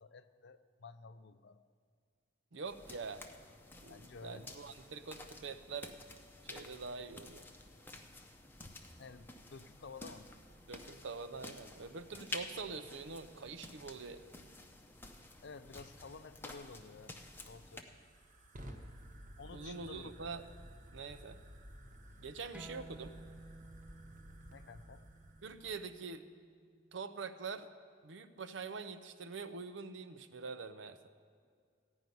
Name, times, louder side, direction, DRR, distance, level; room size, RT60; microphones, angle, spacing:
voice 1, 0.0-1.6 3.9-4.5 9.0-10.3 15.4-17.1 17.4-18.0 19.4-20.3 22.1-22.2 24.5-25.0, left 4 dB, 60° left, 12 dB, 0.6 m, -52 dB
voice 2, 2.5-3.3 3.8-5.9 6.4-7.5 10.7-14.2 19.5-20.4 20.9-21.4 22.2-23.1 25.4-26.3 26.9-27.7 28.0-31.0, right 4 dB, 65° right, 10 dB, 0.6 m, -45 dB
sound 1, 2.6-17.8, left 2 dB, 10° left, 0.7 m, -51 dB
Fire, 17.0-26.0, equal, 40° right, 1.1 m, -54 dB
sound 2, 22.5-27.7, right 2 dB, 5° right, 0.3 m, -56 dB
15.5 x 5.5 x 9.3 m, 2.1 s
head